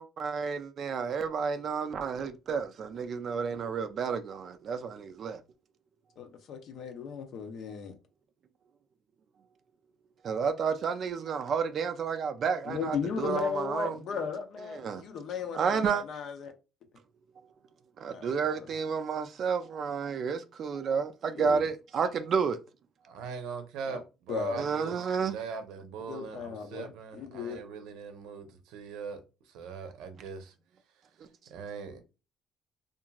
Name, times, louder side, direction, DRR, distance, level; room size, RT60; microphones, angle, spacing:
voice 1, 0.0-5.4 10.2-14.0 14.7-15.0 15.5-16.0 18.0-22.6 24.6-25.3, right 6 dB, 45° right, 0.3 m, -31 dB
voice 2, 6.2-7.9 12.7-16.5 18.1-18.7 21.4-21.6 23.9-24.0 24.3-24.9 26.1-27.6, left 6 dB, 55° left, 0.5 m, -36 dB
voice 3, 23.0-30.5 31.5-32.0, right 6 dB, 85° right, 0.6 m, -41 dB
2.9 x 2.5 x 2.3 m
cardioid pair, 140°, 0 cm